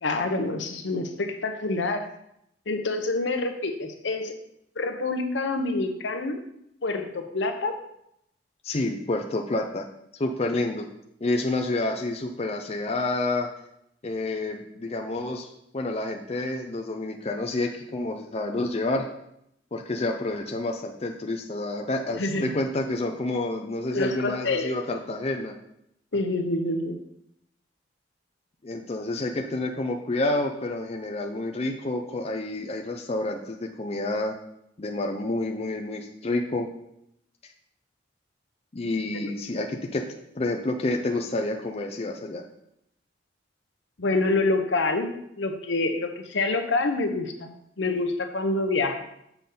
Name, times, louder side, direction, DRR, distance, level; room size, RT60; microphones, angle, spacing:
voice 1, 0.0-2.1 2.7-4.3 4.8-6.4 6.8-7.8 22.2-22.5 23.9-24.7 26.1-27.0 39.1-39.3 44.0-45.1 45.4-49.0, left 2 dB, 75° left, 6 dB, 0.8 m, -27 dB
voice 2, 8.6-9.9 10.2-10.9 11.2-13.5 14.0-19.1 19.7-25.5 28.6-34.3 34.8-36.7 38.7-40.0 40.3-42.4, left 2 dB, 35° left, 3 dB, 0.5 m, -29 dB
6.9 x 5.9 x 3.8 m, 0.76 s
head